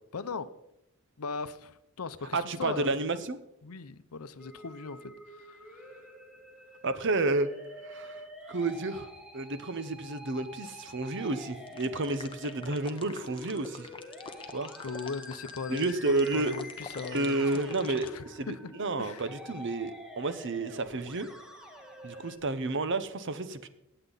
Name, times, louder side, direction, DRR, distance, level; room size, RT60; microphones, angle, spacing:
voice 1, 0.1-0.5 1.2-2.9 3.6-5.0 5.4-5.9 14.8-18.7 19.0-19.3, left 4 dB, 75° left, 13 dB, 0.7 m, -39 dB
voice 2, 2.3-3.4 6.8-7.5 7.8-8.2 8.5-9.1 9.3-13.9 14.5-14.7 15.7-16.5 17.1-18.1 18.4-21.3 22.0-23.7, right 2 dB, 55° right, 12 dB, 0.8 m, -31 dB
Musical instrument, 4.4-22.4, left 1 dB, 5° right, 1.3 m, -48 dB
sound 1, 11.7-18.2, left 4 dB, 25° left, 0.9 m, -45 dB
18.0 x 7.9 x 4.0 m, 0.84 s
head